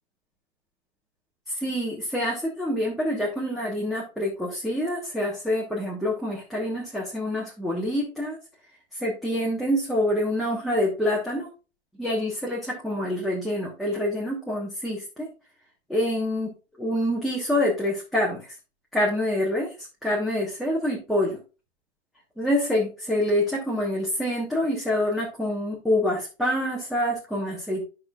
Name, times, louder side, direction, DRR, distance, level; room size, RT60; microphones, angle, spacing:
voice 1, 1.5-8.4 8.9-11.5 12.0-15.3 15.9-16.5 16.8-18.5 18.9-19.7 20.0-21.4 22.4-27.8, left 1 dB, ahead, -4 dB, 1.2 m, -26 dB
10.5 x 6.0 x 2.4 m, 0.31 s
hypercardioid pair, 145°, 34 cm